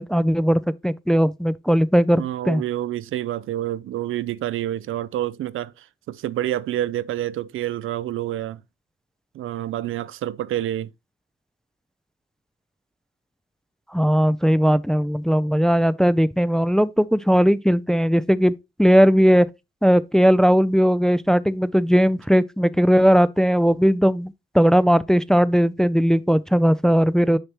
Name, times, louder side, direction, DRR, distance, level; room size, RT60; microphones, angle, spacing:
voice 1, 0.0-2.6 13.9-18.5 18.8-19.5 19.8-27.4, equal, 5° left, 0.4 m, -18 dB
voice 2, 2.2-8.6 9.3-10.9, right 13 dB, 80° right, 0.4 m, -28 dB
6.5 x 5.9 x 2.9 m
cardioid pair, 70°, 21 cm